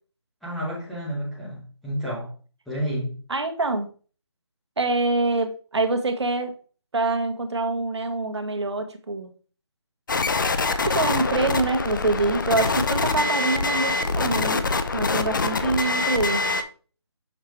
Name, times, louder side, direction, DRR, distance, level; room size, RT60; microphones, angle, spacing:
voice 1, 0.4-2.3 2.7-3.1, equal, ahead, 0.9 m, -30 dB
voice 2, 3.3-3.9 4.8-6.5 6.9-9.3 10.7-14.7 14.9-16.4, right 3 dB, 75° right, 1.2 m, -25 dB
sound 1, 10.1-16.6, left 3 dB, 45° left, 0.6 m, -24 dB
6.5 x 3.3 x 4.6 m
hypercardioid pair, 170°, 14 cm